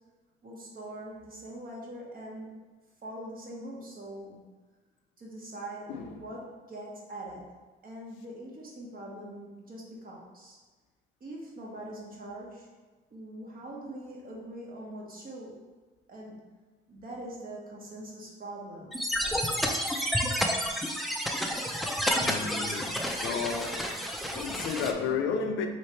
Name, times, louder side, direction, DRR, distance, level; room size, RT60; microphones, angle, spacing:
voice 1, 0.4-2.5 3.0-4.4 5.2-5.9 6.2-7.4 7.8-10.6 11.2-12.7 13.1-15.6 16.1-16.4 16.9-19.6, right 1 dB, 45° right, 1.1 m, -43 dB
sound 1, 18.9-24.9, equal, ahead, 0.4 m, -30 dB
voice 2, 22.2-23.9 24.3-25.7, left 6 dB, 90° left, 0.5 m, -32 dB
3.2 x 3.1 x 4.3 m
cardioid pair, 90°, 20 cm